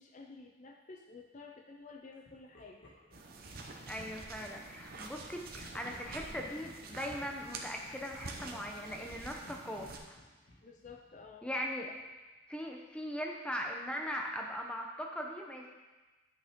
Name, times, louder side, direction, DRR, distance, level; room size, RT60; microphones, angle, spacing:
voice 1, 0.0-2.8 10.6-11.5, left 4 dB, 40° left, 3 dB, 0.5 m, -52 dB
Laughter, 2.2-4.4 5.6-9.1 9.4-12.2, left 1 dB, 70° left, 1.6 m, -59 dB
sound 1, 3.1-10.0, right 3 dB, 50° right, 0.9 m, -47 dB
voice 2, 3.9-10.2 11.4-11.9 12.5-15.7, equal, 5° left, 1 dB, 0.8 m, -40 dB
9.4 x 6.1 x 3.7 m, 1.2 s
head